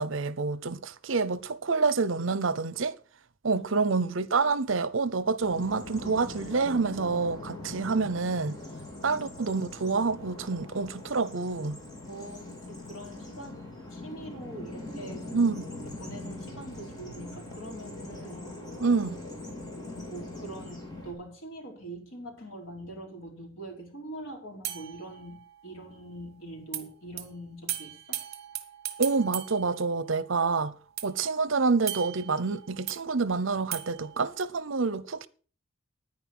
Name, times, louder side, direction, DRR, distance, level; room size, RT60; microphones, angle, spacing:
voice 1, 0.0-3.0 3.4-8.6 9.0-11.8 15.3-15.6 18.8-19.2 29.0-30.7 31.0-35.3, right 4 dB, 70° right, 0.8 m, -27 dB
Bird vocalization bird call bird song, 5.4-21.1, left 2 dB, 20° left, 3.8 m, -42 dB
voice 2, 12.1-13.6 13.9-15.3 15.9-18.6 20.1-28.2, right 1 dB, 75° left, 4.6 m, -43 dB
sound 1, 24.6-25.8 26.7-26.8 27.2-27.3 27.7-30.4 31.0-33.0 33.7-34.4, right 12 dB, 50° right, 1.3 m, -38 dB
9.9 x 9.9 x 6.1 m
head